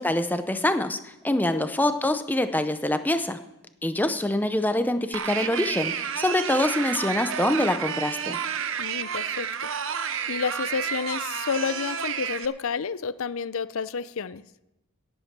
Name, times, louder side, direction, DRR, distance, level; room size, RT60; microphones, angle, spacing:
voice 1, 0.0-3.4 3.8-8.4, left 1 dB, 10° left, 9 dB, 0.6 m, -25 dB
voice 2, 1.3-1.7 8.8-9.7 10.3-14.4, left 5 dB, 70° left, 16 dB, 0.5 m, -30 dB
sound 1, 5.1-12.5, right 7 dB, 60° right, 0.7 m, -30 dB
17.5 x 8.2 x 6.0 m, 0.92 s
head